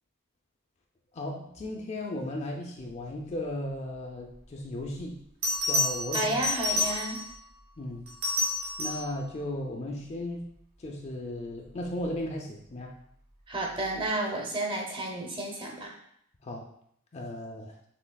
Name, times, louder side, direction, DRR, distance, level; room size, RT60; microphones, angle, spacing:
voice 1, 1.1-5.2 5.6-6.4 7.8-8.1 8.8-10.5 10.8-12.9 16.4-16.7 17.1-17.8, left 1 dB, 30° left, 1 dB, 0.4 m, -36 dB
Bell, 4.8-4.9 5.4-7.4 8.1-9.1 11.8-12.1, left 2 dB, 65° right, 1.7 m, -29 dB
voice 2, 6.1-7.2 13.5-15.9, right 1 dB, 20° right, 0 dB, 0.7 m, -31 dB
6.2 x 3.2 x 2.2 m, 0.70 s
head